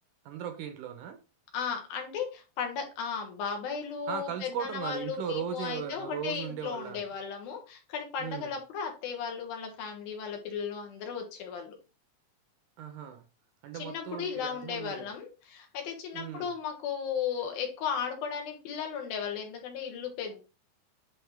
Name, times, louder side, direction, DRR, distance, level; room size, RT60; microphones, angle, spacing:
voice 1, 0.3-1.2 4.1-7.0 8.2-8.5 12.8-13.3 13.6-15.1 16.1-16.5, right 9 dB, 75° right, 2.0 m, -37 dB
voice 2, 1.5-11.7 13.7-20.4, left 7 dB, 80° left, 3.3 m, -35 dB
10.0 x 3.8 x 3.4 m
omnidirectional pair, 4.3 m